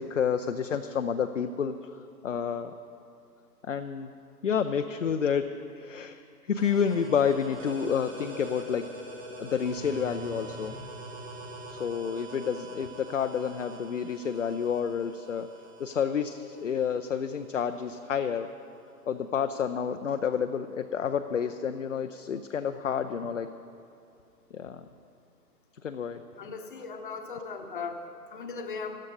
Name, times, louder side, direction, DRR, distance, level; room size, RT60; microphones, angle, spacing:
voice 1, 0.0-2.7 3.6-4.1 4.4-5.5 5.7-8.8 9.4-10.7 11.7-15.5 15.8-18.5 19.1-23.5 24.5-24.9 25.8-26.2, left 7 dB, 50° left, 8 dB, 0.5 m, -29 dB
sound 1, 6.6-18.0, right 1 dB, 15° right, 0.9 m, -44 dB
voice 2, 26.4-28.9, left 4 dB, 30° left, 6 dB, 0.9 m, -38 dB
14.0 x 12.0 x 5.2 m, 2.5 s
figure-of-eight pair, 140°, 49 cm